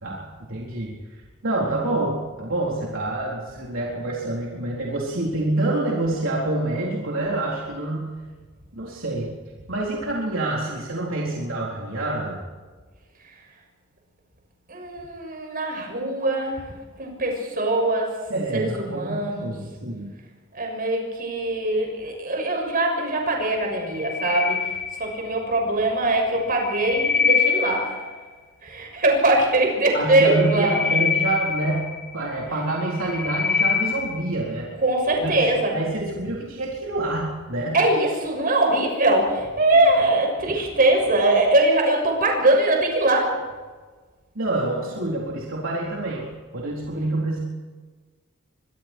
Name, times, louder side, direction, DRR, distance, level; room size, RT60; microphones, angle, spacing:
voice 1, 0.0-0.9 1.4-8.1 8.8-9.3 9.7-12.4 18.3-20.1 29.9-34.7 35.2-37.8 44.3-46.3 46.5-47.4, right 2 dB, 65° right, -3 dB, 4.1 m, -27 dB
voice 2, 14.7-18.2 18.5-19.5 20.5-28.2 28.6-30.8 34.8-35.8 37.7-43.5, right 2 dB, 40° right, 1 dB, 6.6 m, -22 dB
sound 1, 23.8-25.4 26.4-28.2 30.2-32.3 32.8-34.3, left 6 dB, 5° left, 4.2 m, -25 dB
25.0 x 22.5 x 4.6 m, 1.4 s
head